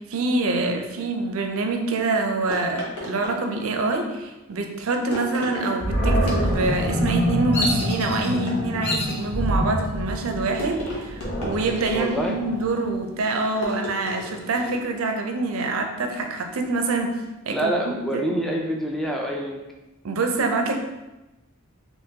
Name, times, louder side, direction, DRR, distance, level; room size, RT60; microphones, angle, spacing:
voice 1, 0.0-17.2 17.4-18.2 20.0-20.7, right 3 dB, 65° right, 4 dB, 0.5 m, -26 dB
sound 1, 2.5-3.9 5.1-5.8 6.2-6.9 8.3-9.2 10.6-12.4 13.6-14.9, left 1 dB, 80° left, 0.9 m, -35 dB
Animal, 5.8-12.9, equal, 35° left, 1.2 m, -26 dB
Bird vocalization bird call bird song, 7.5-8.3 8.8-9.3 9.8-10.3 11.5-12.3 12.6-12.7 13.2-14.6, left 1 dB, 50° left, 0.7 m, -31 dB
voice 2, 11.9-12.4 17.5-19.6, right 1 dB, ahead, 0 dB, 0.3 m, -26 dB
3.6 x 2.8 x 2.8 m, 1.0 s
head